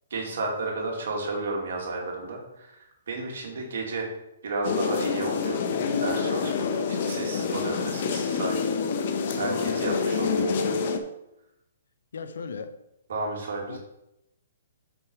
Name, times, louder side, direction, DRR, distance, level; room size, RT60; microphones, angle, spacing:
voice 1, 0.1-4.1 4.4-5.6 6.0-8.6 9.1-10.7 13.1-13.8, right 3 dB, 70° right, 2.7 m, -32 dB
sound 1, 4.6-11.0, left 5 dB, 50° left, 1.0 m, -27 dB
voice 2, 12.1-12.8 13.7-13.8, left 5 dB, 75° left, 0.8 m, -36 dB
6.2 x 4.9 x 6.4 m
hypercardioid pair, 145°, 0 cm